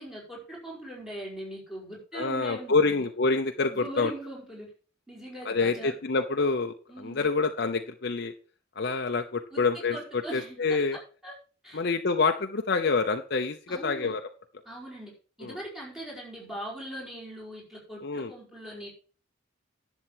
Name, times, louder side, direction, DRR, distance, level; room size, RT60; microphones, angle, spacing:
voice 1, 0.0-3.1 3.7-4.7 5.1-6.0 6.9-7.3 9.5-11.3 11.6-11.8 13.7-14.1 14.6-15.1 15.4-18.9, right 1 dB, ahead, -4 dB, 4.9 m, -41 dB
voice 2, 2.1-4.1 5.4-8.3 8.8-11.0 11.7-14.2 15.4-15.6 18.0-18.3, left 4 dB, 55° left, 5 dB, 0.8 m, -27 dB
11.0 x 7.3 x 4.6 m, 0.38 s
head